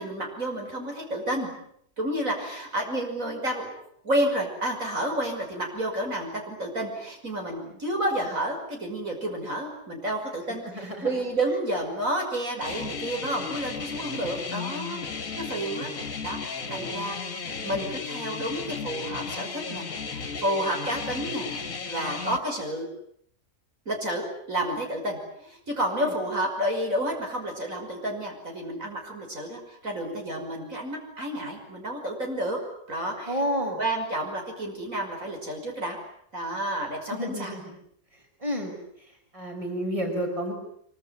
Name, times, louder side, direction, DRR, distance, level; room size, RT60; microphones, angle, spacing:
voice 1, 0.0-1.5 2.0-3.7 4.0-15.1 15.4-21.5 21.8-22.9 23.9-32.6 32.9-33.4 33.8-36.0 36.3-37.5, right 1 dB, 55° right, 2 dB, 6.3 m, -30 dB
voice 2, 10.6-11.1 13.8-14.1 16.7-17.8 26.0-26.1 33.3-33.8 37.1-37.8 38.4-38.8 39.3-40.5, equal, 20° right, 3 dB, 5.8 m, -32 dB
sound 1, 12.6-22.4, left 5 dB, 55° left, 2.2 m, -34 dB
25.0 x 24.5 x 9.5 m, 0.68 s
omnidirectional pair, 1.7 m